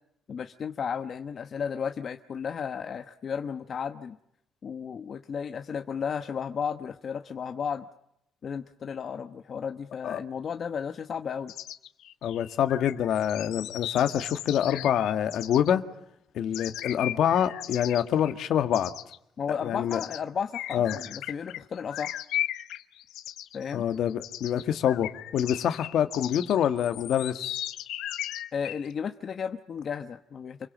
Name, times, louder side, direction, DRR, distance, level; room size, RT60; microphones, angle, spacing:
voice 1, 0.3-4.2 4.6-7.9 8.4-11.5 19.4-22.2 23.5-23.9 28.5-30.7, left 7 dB, 45° left, 7 dB, 1.0 m, -34 dB
sound 1, 11.5-15.7 16.5-18.5 18.7-19.2 19.9-20.2 20.5-28.9, left 13 dB, 90° left, 1.0 m, -37 dB
voice 2, 12.2-15.8 16.4-18.9 19.5-20.0 20.7-21.0 23.7-27.4, left 9 dB, 65° left, 8 dB, 1.8 m, -26 dB
28.5 x 22.5 x 7.5 m, 0.78 s
cardioid pair, 130°, 0 cm